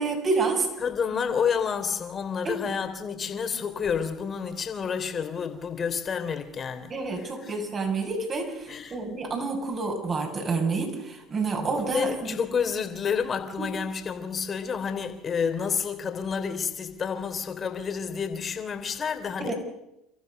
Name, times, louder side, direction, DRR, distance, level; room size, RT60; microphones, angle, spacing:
voice 1, 0.0-0.7 2.4-2.6 6.9-12.4 13.6-13.7 19.4-19.5, right 3 dB, 40° right, 7.4 m, -28 dB
voice 2, 0.8-6.9 7.2-7.5 8.7-9.0 11.6-19.5, left 6 dB, 40° left, 3.3 m, -29 dB
30.0 x 14.5 x 6.7 m
hypercardioid pair, 75°, 0 cm